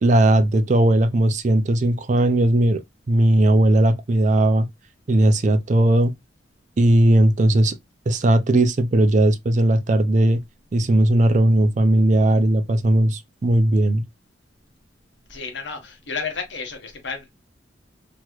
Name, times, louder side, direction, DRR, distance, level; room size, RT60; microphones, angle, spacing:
voice 1, 0.0-2.8 3.1-4.7 5.1-6.1 6.8-7.8 8.1-10.4 10.7-14.0, right 1 dB, 40° right, 0.4 m, -17 dB
voice 2, 15.3-17.3, left 5 dB, 70° left, 1.0 m, -32 dB
3.0 x 3.0 x 2.3 m
head